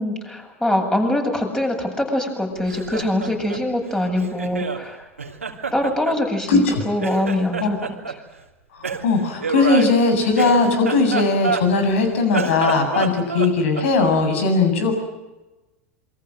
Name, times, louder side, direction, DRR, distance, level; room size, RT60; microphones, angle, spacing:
voice 1, 0.0-5.1 5.7-8.1, left 1 dB, 10° left, 3 dB, 8.0 m, -23 dB
Laughter, 2.5-4.8 5.2-6.7 7.0-8.2 8.8-11.9 12.2-14.2, right 5 dB, 90° right, 3.0 m, -28 dB
voice 2, 6.5-6.8 7.6-7.7 9.0-14.9, left 3 dB, 65° left, 6 dB, 7.5 m, -18 dB
27.5 x 24.5 x 7.8 m, 1.1 s
hypercardioid pair, 85°, 7 cm